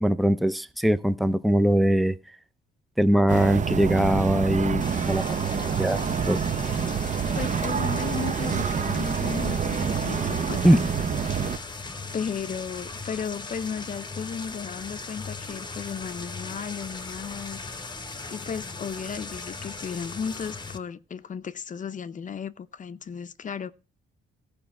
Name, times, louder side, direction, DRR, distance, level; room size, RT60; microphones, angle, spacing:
voice 1, 0.0-2.2 3.0-6.4 10.6-10.8, right 1 dB, ahead, 0.6 m, -22 dB
sound 1, 3.3-11.6, right 7 dB, 40° right, 0.7 m, -27 dB
sound 2, 4.8-20.8, left 3 dB, 20° left, 1.0 m, -38 dB
voice 2, 7.3-10.9 12.1-17.8 18.3-23.7, left 6 dB, 40° left, 0.7 m, -35 dB
15.0 x 5.2 x 5.8 m
cardioid pair, 90°, 20 cm